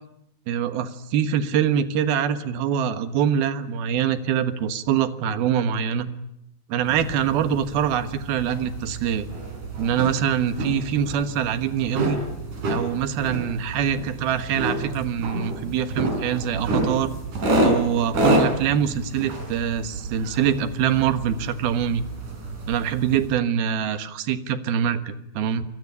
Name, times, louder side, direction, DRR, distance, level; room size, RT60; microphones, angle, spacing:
voice 1, 0.5-6.1 6.7-9.3 9.8-12.2 12.7-17.1 17.6-22.0 22.7-25.7, right 8 dB, 75° right, 12 dB, 3.3 m, -24 dB
sound 1, 6.9-23.3, right 1 dB, 55° right, 6.5 m, -29 dB
27.5 x 19.5 x 9.8 m, 0.78 s
omnidirectional pair, 4.4 m